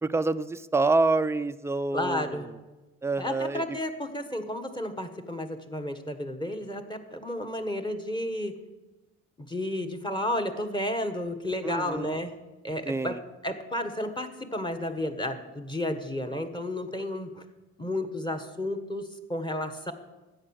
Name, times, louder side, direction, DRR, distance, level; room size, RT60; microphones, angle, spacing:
voice 1, 0.0-2.4 3.0-3.8 11.6-12.2 12.9-13.2, right 3 dB, 10° right, 11 dB, 0.5 m, -27 dB
voice 2, 1.9-2.5 3.2-8.5 9.4-12.3 12.6-17.4 17.8-19.9, left 1 dB, 15° left, 7 dB, 1.4 m, -32 dB
13.0 x 8.8 x 6.5 m, 1.1 s
cardioid pair, 90°, 30 cm